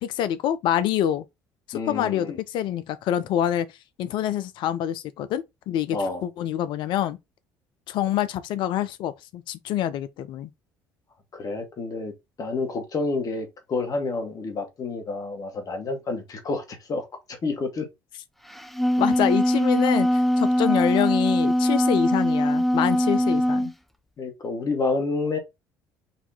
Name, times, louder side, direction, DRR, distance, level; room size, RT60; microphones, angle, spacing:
voice 1, 0.0-1.2 1.7-3.7 4.0-7.2 7.9-10.5 19.0-23.7, left 11 dB, 65° left, 0.6 m, -26 dB
voice 2, 1.7-2.4 5.9-6.2 11.3-12.1 12.4-17.9 23.1-23.4 24.2-25.4, left 3 dB, 45° left, 1.7 m, -29 dB
Wind instrument woodwind instrument, 18.5-23.7, equal, ahead, 0.7 m, -21 dB
4.3 x 2.8 x 3.9 m
hypercardioid pair, 65°, 9 cm